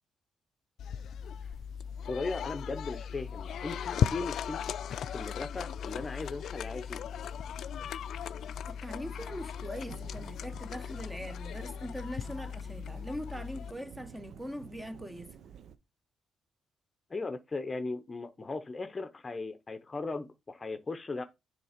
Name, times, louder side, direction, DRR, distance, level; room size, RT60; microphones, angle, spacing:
sound 1, 0.8-13.7, left 8 dB, 70° left, 0.3 m, -37 dB
voice 1, 2.1-4.6 5.1-7.0 17.1-21.2, left 3 dB, 30° left, 0.7 m, -37 dB
voice 2, 8.6-15.4, equal, 10° right, 0.8 m, -41 dB
Thunderstorm / Rain, 9.8-15.8, right 8 dB, 65° right, 0.5 m, -52 dB
6.8 x 3.3 x 5.0 m
cardioid pair, 90°, 0 cm